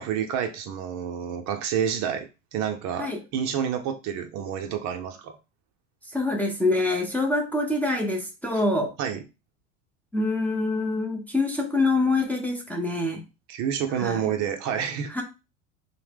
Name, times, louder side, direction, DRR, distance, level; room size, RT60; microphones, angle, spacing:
voice 1, 0.0-5.4 8.5-8.6 9.0-9.2 13.5-15.1, right 8 dB, 45° right, 6 dB, 0.6 m, -29 dB
voice 2, 6.1-8.9 10.1-13.2 13.9-14.3 15.1-15.2, left 2 dB, 5° left, 1 dB, 0.5 m, -25 dB
2.7 x 2.1 x 3.3 m, 0.28 s
hypercardioid pair, 90°, 38 cm